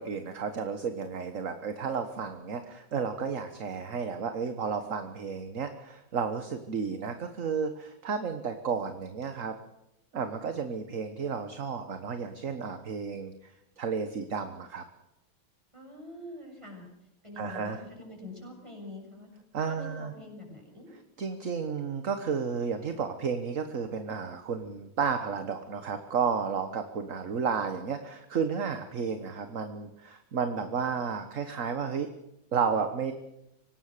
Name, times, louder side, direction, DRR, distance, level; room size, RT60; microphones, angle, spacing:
voice 1, 0.0-9.6 10.1-13.3 13.8-14.8 17.4-17.8 19.5-20.1 21.2-32.1 32.5-33.1, right 6 dB, 45° right, 8 dB, 1.5 m, -32 dB
voice 2, 15.7-16.9 17.2-19.3 19.7-20.9, left 2 dB, 15° right, 1 dB, 7.1 m, -45 dB
24.5 x 19.0 x 6.8 m, 0.84 s
omnidirectional pair, 2.2 m